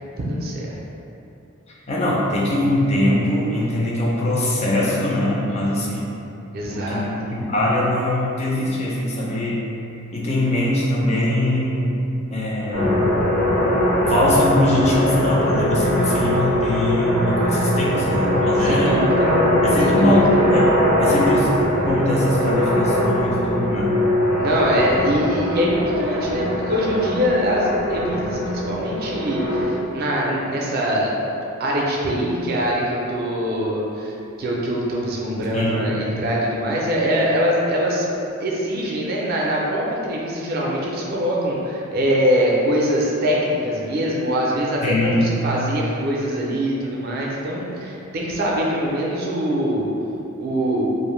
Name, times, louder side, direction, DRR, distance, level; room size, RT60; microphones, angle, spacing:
voice 1, 0.2-0.8 6.5-7.3 18.6-19.3 19.8-20.3 24.4-31.2 31.6-34.1 34.4-38.1 38.4-49.9 50.4-50.8, equal, 45° right, -3 dB, 0.4 m, -23 dB
voice 2, 1.9-6.1 6.7-9.6 10.1-12.0 12.3-13.0 14.1-19.0 19.6-20.7 21.0-24.0 35.5-35.8 44.8-45.3, left 1 dB, 30° left, -5 dB, 0.4 m, -22 dB
sound 1, 12.7-29.7, left 1 dB, 60° left, 0.7 m, -21 dB
2.5 x 2.0 x 3.0 m, 2.8 s
head